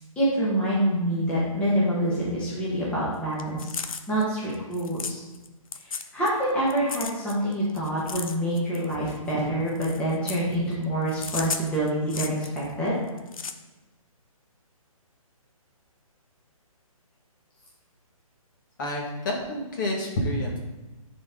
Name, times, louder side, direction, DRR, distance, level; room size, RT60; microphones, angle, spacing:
voice 1, 0.1-5.2 5.8-13.0, right 1 dB, 5° left, -8 dB, 1.3 m, -26 dB
sound 1, 3.4-5.5 5.7-6.4 6.7-9.3 9.7-10.5 11.1-12.7 13.1-13.5, left 5 dB, 65° left, 0.8 m, -35 dB
voice 2, 18.8-20.6, left 1 dB, 35° left, -1 dB, 1.7 m, -28 dB
10.5 x 4.3 x 3.7 m, 1.1 s
hypercardioid pair, 165°, 19 cm